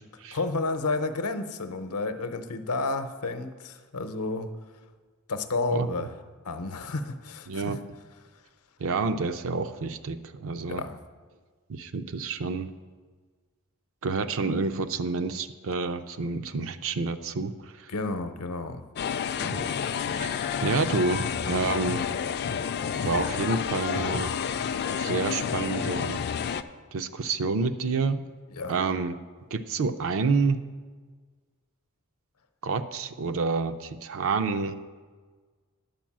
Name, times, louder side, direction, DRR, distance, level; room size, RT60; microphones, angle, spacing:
voice 1, 0.3-4.5 5.3-6.1 6.4-7.7 10.7-11.0 17.9-18.9 28.5-28.7, left 3 dB, 85° left, 9 dB, 0.7 m, -31 dB
voice 2, 5.7-6.0 7.5-7.8 8.8-10.8 11.7-12.7 14.0-17.9 19.4-19.6 20.2-22.1 23.0-24.3 25.0-26.2 26.9-28.2 28.7-29.2 29.5-30.6 32.6-34.8, right 4 dB, 65° right, 10 dB, 0.5 m, -28 dB
sound 1, 19.0-26.6, left 7 dB, 50° left, 0.3 m, -29 dB
10.5 x 4.6 x 7.4 m, 1.5 s
head